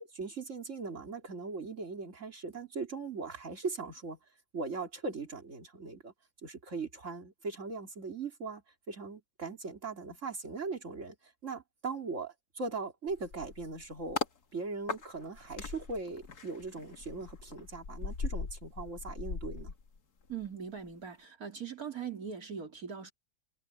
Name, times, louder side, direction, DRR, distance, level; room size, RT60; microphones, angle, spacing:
voice 1, 0.1-4.2 4.5-6.1 6.4-14.2 14.5-19.7, right 4 dB, 50° right, 3.3 m, -39 dB
sound 1, 13.1-14.4 14.9-20.5 20.8-21.0, left 4 dB, 80° left, 2.5 m, -40 dB
voice 2, 20.3-23.1, right 7 dB, 70° right, 3.6 m, -41 dB
omnidirectional pair, 1.6 m